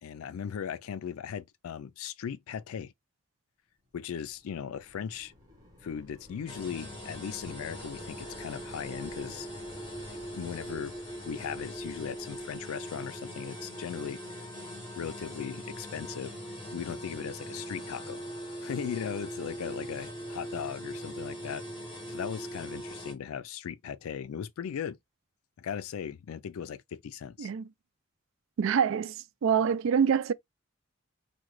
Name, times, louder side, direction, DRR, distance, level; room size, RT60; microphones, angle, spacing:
voice 1, 0.0-2.9 3.9-5.3 5.8-9.5 10.1-11.0 11.3-14.5 15.0-18.2 18.6-21.7 22.1-25.0 25.6-27.5, left 7 dB, 85° left, 0.4 m, -38 dB
sound 1, 4.1-13.8, left 1 dB, 15° right, 1.3 m, -53 dB
sound 2, 6.5-23.1, equal, 25° left, 1.7 m, -41 dB
voice 2, 28.6-30.3, right 7 dB, 70° right, 0.3 m, -26 dB
3.7 x 2.2 x 3.0 m
head